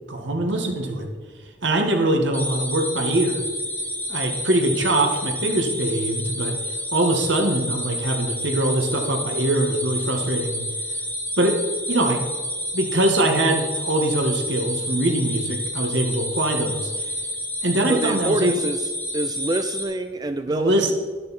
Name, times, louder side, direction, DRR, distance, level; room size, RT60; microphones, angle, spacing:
voice 1, 0.1-1.1 1.6-3.4 4.1-6.6 6.9-10.6 11.4-11.6 11.9-12.2 12.7-16.9 17.6-18.6 20.5-20.9, right 1 dB, 70° right, 2 dB, 1.9 m, -22 dB
sound 1, 2.3-19.8, left 1 dB, 10° left, 1.4 m, -29 dB
voice 2, 17.9-18.9 19.1-20.9, right 2 dB, 20° right, 8 dB, 0.4 m, -26 dB
11.5 x 11.5 x 4.4 m, 1.5 s
head